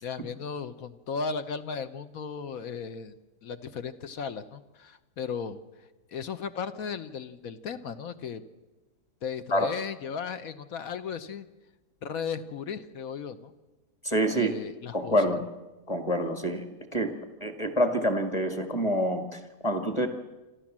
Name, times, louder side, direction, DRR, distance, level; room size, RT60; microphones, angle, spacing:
voice 1, 0.0-3.1 3.4-5.6 6.1-8.5 9.2-11.5 12.0-13.5 14.3-15.4, left 6 dB, 60° left, 11 dB, 1.2 m, -36 dB
voice 2, 14.0-14.5 14.9-15.4 15.9-16.6 16.9-17.1 17.4-20.1, equal, 15° left, 7 dB, 1.7 m, -26 dB
26.0 x 14.0 x 7.4 m, 1.1 s
omnidirectional pair, 1.9 m